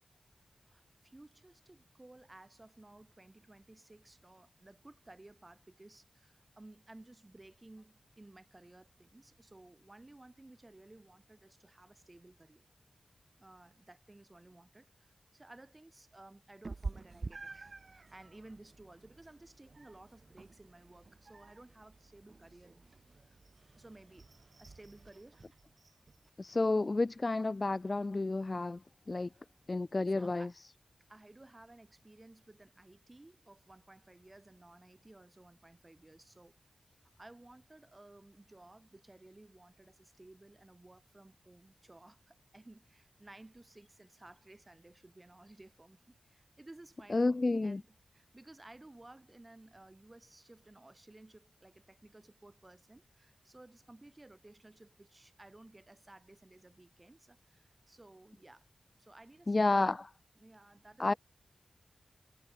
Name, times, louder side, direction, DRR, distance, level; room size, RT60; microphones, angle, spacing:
voice 1, 0.6-12.7 13.4-22.9 23.2-23.4 23.8-24.3 24.6-25.5 29.3-29.4 30.1-30.6 31.1-36.6 36.9-58.7 59.0-60.0 60.4-61.2, right 2 dB, 25° right, 7.1 m, -57 dB
Meow, 16.6-26.3, right 3 dB, 50° right, 7.7 m, -49 dB
voice 2, 26.4-28.8 29.1-29.3 29.7-30.5 47.1-47.8 59.5-60.0 61.0-61.1, left 3 dB, 40° left, 0.5 m, -30 dB
wide cardioid pair, 70°, 0 cm